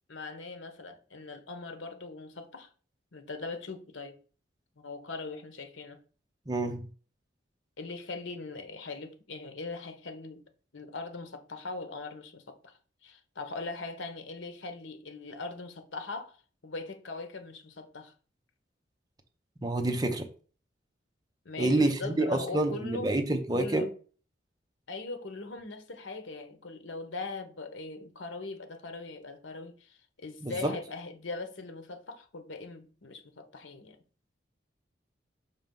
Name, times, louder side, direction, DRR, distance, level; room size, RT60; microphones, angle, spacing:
voice 1, 0.1-2.7 3.1-4.2 4.8-6.0 7.8-10.4 10.7-16.4 16.6-18.1 21.4-23.1 23.5-23.9 24.9-34.0, left 3 dB, 90° left, 1.0 m, -41 dB
voice 2, 6.5-6.9 19.6-20.3 21.6-23.9 30.4-30.7, right 2 dB, 20° right, 0.8 m, -28 dB
6.1 x 3.0 x 5.3 m
head